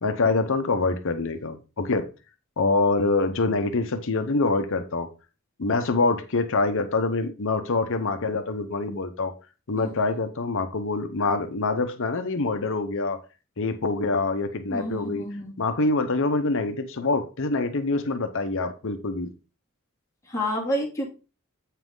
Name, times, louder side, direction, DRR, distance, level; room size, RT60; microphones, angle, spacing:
voice 1, 0.0-2.1 2.6-5.1 5.6-9.3 9.7-13.2 13.6-15.2 15.6-19.3, left 3 dB, 65° left, 0.9 m, -25 dB
voice 2, 14.7-15.5 20.3-21.1, equal, 15° left, 2.6 m, -29 dB
8.3 x 5.8 x 3.8 m
head